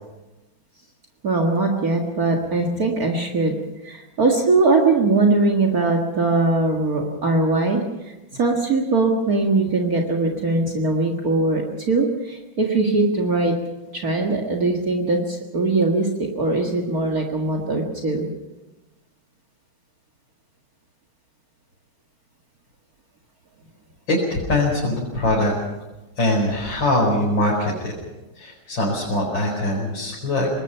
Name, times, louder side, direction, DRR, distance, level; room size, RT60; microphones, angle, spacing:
voice 1, 1.2-3.6 3.8-13.6 13.9-18.3, right 3 dB, 50° right, 0 dB, 2.2 m, -21 dB
voice 2, 24.1-25.5 26.2-27.9 28.4-30.5, left 1 dB, 70° left, -3 dB, 5.4 m, -22 dB
25.5 x 20.5 x 5.7 m, 1.1 s
omnidirectional pair, 2.1 m